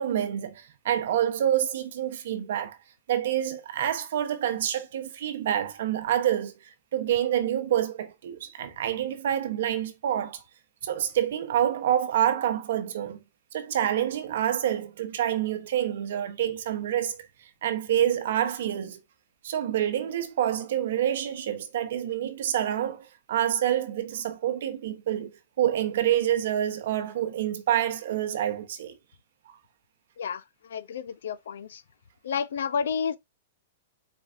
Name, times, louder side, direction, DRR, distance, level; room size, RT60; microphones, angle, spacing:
voice 1, 0.0-2.8 3.1-10.4 10.8-13.2 13.5-17.2 17.6-19.0 19.4-29.0 29.5-29.6, right 11 dB, 70° right, 0.9 m, -27 dB
voice 2, 30.7-31.8 32.2-33.2, left 6 dB, 80° left, 0.5 m, -30 dB
4.5 x 4.0 x 2.5 m
hypercardioid pair, 135°, 0 cm